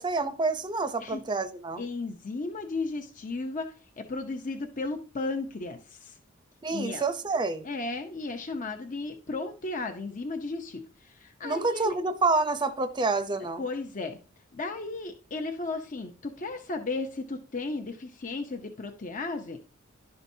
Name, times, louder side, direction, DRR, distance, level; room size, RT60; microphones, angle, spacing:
voice 1, 0.0-1.8 6.6-7.7 11.4-13.6, right 3 dB, 20° right, 0.6 m, -28 dB
voice 2, 1.8-6.2 6.7-7.0 7.6-12.0 13.6-14.2 14.5-19.6, left 3 dB, 40° left, 0.7 m, -35 dB
11.5 x 5.8 x 2.7 m
head